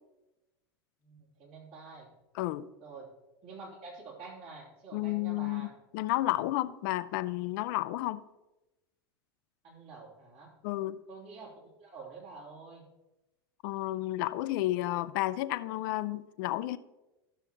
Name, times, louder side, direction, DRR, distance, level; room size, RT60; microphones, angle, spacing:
voice 1, 1.0-2.1 2.8-3.1 3.4-5.7 9.6-10.5 11.1-12.9, right 4 dB, 50° right, 3.1 m, -48 dB
voice 2, 2.3-2.6 4.9-5.7 5.9-8.2 10.6-11.0 13.6-16.8, left 16 dB, 55° left, 0.4 m, -31 dB
12.5 x 6.9 x 2.9 m
figure-of-eight pair, 85°, 13 cm